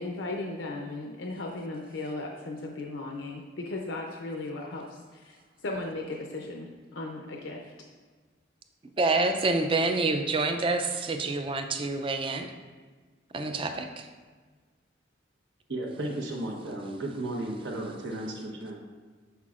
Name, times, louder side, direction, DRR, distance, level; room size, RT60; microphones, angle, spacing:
voice 1, 0.0-4.8 5.1-5.4 5.6-7.7, left 2 dB, 75° left, 0 dB, 0.5 m, -36 dB
voice 2, 9.0-12.5 13.3-14.1, right 3 dB, 25° right, 6 dB, 0.4 m, -27 dB
voice 3, 15.7-18.8, right 1 dB, 80° right, -1 dB, 1.0 m, -34 dB
7.0 x 5.7 x 2.4 m, 1.4 s
head